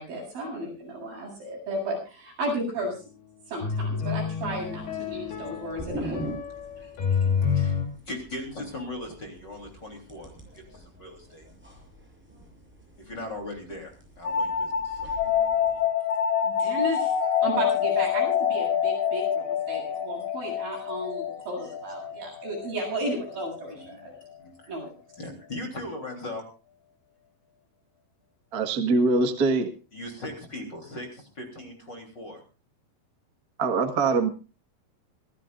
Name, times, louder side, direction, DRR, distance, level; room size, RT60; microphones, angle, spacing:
voice 1, 0.0-3.0 3.5-6.2 16.4-17.1 17.4-24.1 24.7-24.9, right 1 dB, 75° right, 0 dB, 10.0 m, -33 dB
sound 1, 2.8-2.9 3.6-7.9, left 6 dB, 90° left, 5.2 m, -29 dB
sound 2, 4.4-15.8, right 1 dB, 5° right, 7.0 m, -43 dB
voice 2, 6.7-7.8 8.1-11.5 13.0-15.2 21.6-21.7 22.0-22.2 23.7-24.7 25.2-26.4 29.9-32.4, left 1 dB, 30° left, 3 dB, 3.8 m, -39 dB
sound 3, 14.2-23.6, left 8 dB, 55° left, 3.1 m, -27 dB
voice 3, 28.5-29.7 33.6-34.3, right 3 dB, 45° right, 6 dB, 1.2 m, -23 dB
25.5 x 15.5 x 2.5 m, 0.34 s
omnidirectional pair, 4.3 m